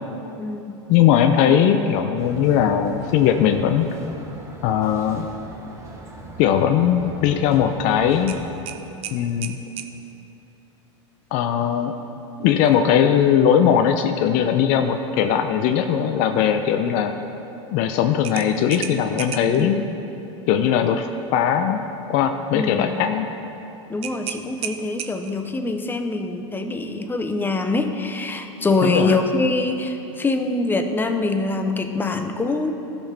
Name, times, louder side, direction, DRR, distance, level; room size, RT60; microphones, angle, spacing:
voice 1, 0.4-0.8 19.4-19.9 22.5-23.0 23.9-32.7, left 3 dB, 15° left, 6 dB, 0.7 m, -24 dB
voice 2, 0.9-3.9 4.6-5.3 6.4-8.4 9.1-9.6 11.3-11.9 12.4-17.2 17.7-19.8 20.5-21.1 21.3-21.8 22.1-23.3 28.8-29.2, left 9 dB, 50° left, 6 dB, 0.5 m, -19 dB
sound 1, 2.2-8.6, right 2 dB, 20° right, 1.3 m, -40 dB
sound 2, 8.3-9.9 12.6-12.8 13.2-13.3 18.2-19.6 24.0-25.5, right 9 dB, 40° right, 0.7 m, -34 dB
15.5 x 5.7 x 3.4 m, 3.0 s
hypercardioid pair, 105°, 16 cm